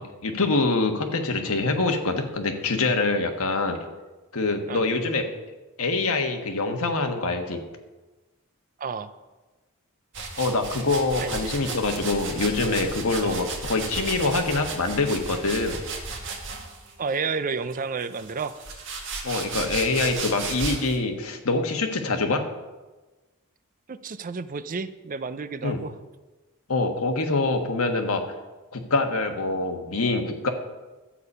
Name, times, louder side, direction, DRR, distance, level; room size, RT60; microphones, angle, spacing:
voice 1, 0.0-3.8 4.3-5.2 5.8-7.6 10.4-15.8 19.2-22.4 25.6-25.8 26.7-28.2 28.7-30.5, left 3 dB, 75° left, 5 dB, 1.4 m, -25 dB
voice 2, 8.8-9.1 11.2-11.5 13.2-13.4 17.0-18.6 23.9-25.9, right 5 dB, 40° right, 13 dB, 0.5 m, -31 dB
sound 1, 10.1-16.9 17.7-21.0, right 3 dB, 60° right, 1.9 m, -34 dB
12.0 x 8.3 x 5.4 m, 1.2 s
head